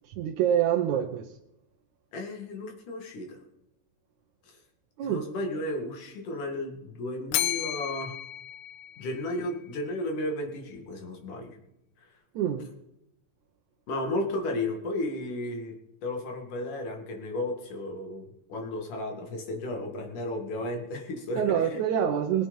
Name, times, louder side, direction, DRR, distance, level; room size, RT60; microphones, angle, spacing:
voice 1, 0.2-1.3 5.0-5.2 12.4-12.7 21.4-22.5, right 9 dB, 70° right, 3 dB, 2.0 m, -26 dB
voice 2, 2.1-3.4 4.5-4.6 5.0-8.2 9.0-11.6 13.9-15.8 16.0-21.8, left 1 dB, 65° left, 3 dB, 3.6 m, -34 dB
Bell, 7.3-9.5, left 14 dB, 85° left, 2.5 m, -33 dB
21.0 x 8.9 x 5.5 m, 0.84 s
omnidirectional pair, 4.1 m